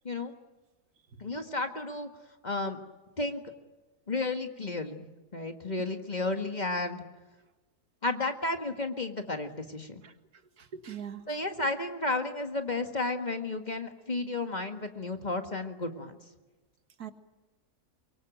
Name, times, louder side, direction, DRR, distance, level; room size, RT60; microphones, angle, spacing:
voice 1, 1.2-2.1 2.4-2.8 3.2-3.4 4.1-5.1 5.3-7.0 8.0-10.0 11.3-16.2, left 2 dB, 30° left, 6 dB, 1.7 m, -32 dB
voice 2, 10.6-11.4 17.0-17.1, right 8 dB, 75° right, 8 dB, 2.1 m, -42 dB
24.0 x 23.5 x 9.1 m, 1.2 s
omnidirectional pair, 1.6 m